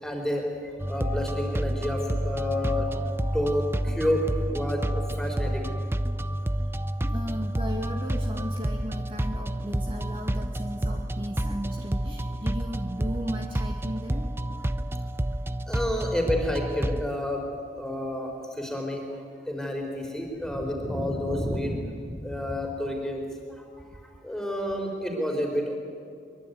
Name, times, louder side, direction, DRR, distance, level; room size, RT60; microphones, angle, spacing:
voice 1, 0.0-5.7 15.7-17.5 17.8-19.0 19.5-23.2 23.5-25.8, left 1 dB, 5° left, 1 dB, 4.2 m, -30 dB
sound 1, 0.8-17.1, right 1 dB, 15° right, 0.6 m, -29 dB
voice 2, 6.6-14.3 24.2-24.4, equal, 30° right, 0 dB, 2.3 m, -36 dB
23.0 x 23.0 x 9.5 m, 2.3 s
head